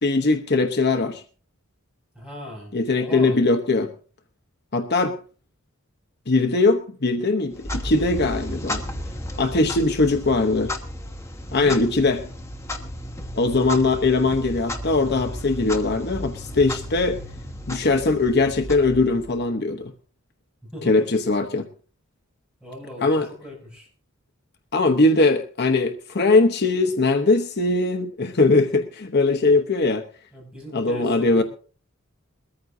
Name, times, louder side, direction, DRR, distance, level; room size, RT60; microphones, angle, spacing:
voice 1, 0.0-1.2 2.7-3.9 4.7-5.2 6.3-8.8 9.4-10.7 11.5-12.3 13.3-17.2 17.7-19.9 20.8-21.7 23.0-23.3 24.7-30.0 30.7-31.4, left 3 dB, 50° left, 5 dB, 1.0 m, -20 dB
voice 2, 2.1-3.4 11.5-11.8 20.6-21.0 22.6-23.9 30.3-31.4, equal, 5° right, -3 dB, 6.4 m, -38 dB
Clock, 7.5-19.5, left 1 dB, 15° left, 1.2 m, -34 dB
22.0 x 14.0 x 2.7 m, 0.39 s
head